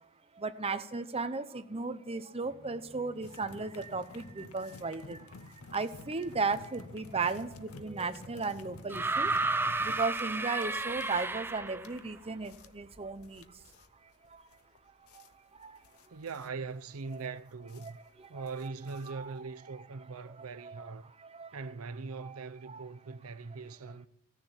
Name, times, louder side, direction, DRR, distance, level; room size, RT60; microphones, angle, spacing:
voice 1, 0.4-5.3 5.7-9.5 9.8-13.5 14.3-14.4 15.1-15.2 15.5-15.8 17.8-17.9 18.2-18.4 19.1-19.3 20.6-20.8 21.2-21.6 22.2-22.4 22.7-22.8, right 4 dB, 30° right, 0.9 m, -36 dB
sound 1, 2.4-9.3, equal, 40° left, 4.4 m, -58 dB
sound 2, 3.2-19.5, left 3 dB, 80° left, 0.8 m, -52 dB
sound 3, 8.9-12.0 13.2-13.3, right 3 dB, 10° right, 0.4 m, -32 dB
voice 2, 16.1-18.0 18.3-21.1 21.5-24.1, right 4 dB, 85° right, 0.7 m, -41 dB
16.5 x 6.7 x 9.7 m
head